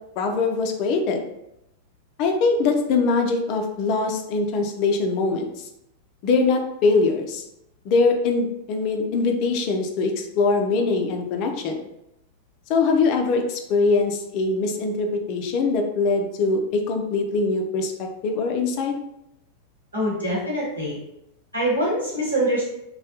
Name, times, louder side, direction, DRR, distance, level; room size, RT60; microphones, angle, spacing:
voice 1, 0.2-1.2 2.2-5.6 6.2-7.4 7.9-11.8 12.7-18.9, left 4 dB, 40° left, 4 dB, 0.3 m, -22 dB
voice 2, 19.9-21.0 21.5-22.6, right 1 dB, 85° right, -7 dB, 1.1 m, -24 dB
2.2 x 2.1 x 2.7 m, 0.83 s
figure-of-eight pair, 90°, 0 cm